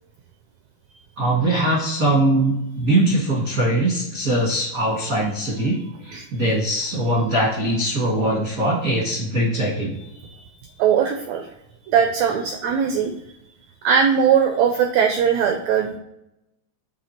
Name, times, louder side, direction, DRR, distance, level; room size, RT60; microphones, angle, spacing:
voice 1, 1.2-10.0, right 1 dB, 70° right, -4 dB, 0.8 m, -21 dB
voice 2, 10.8-11.5 11.9-13.1 13.8-15.9, right 7 dB, 90° right, 4 dB, 1.5 m, -19 dB
7.7 x 3.2 x 4.2 m, 0.86 s
omnidirectional pair, 3.8 m